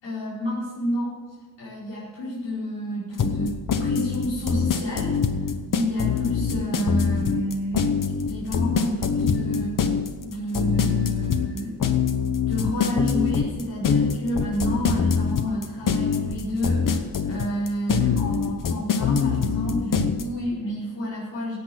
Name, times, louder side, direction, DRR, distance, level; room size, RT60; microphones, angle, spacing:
voice 1, 0.0-1.1 1.6-5.1 5.4-7.9 8.2-9.8 10.2-11.8 12.5-21.6, equal, 80° left, -8 dB, 5.2 m, -30 dB
sound 1, 3.2-20.2, left 6 dB, 45° left, 1.1 m, -23 dB
16.5 x 8.5 x 6.2 m, 1.4 s
wide cardioid pair, 145°, 43 cm